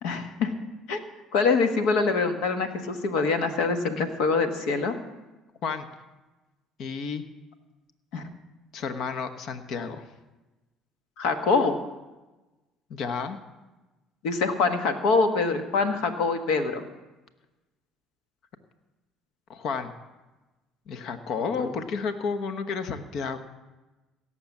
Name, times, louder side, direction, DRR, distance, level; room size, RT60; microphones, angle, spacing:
voice 1, 0.0-0.5 0.9-1.0 1.3-4.9 8.1-8.2 11.2-11.8 14.2-16.8 21.6-21.7, left 4 dB, 80° left, 7 dB, 1.4 m, -24 dB
voice 2, 6.8-7.2 8.7-10.0 12.9-13.4 19.5-19.9 20.9-23.4, left 5 dB, 65° left, 9 dB, 1.0 m, -31 dB
17.0 x 7.0 x 7.3 m, 1.1 s
supercardioid pair, 80°, 0 cm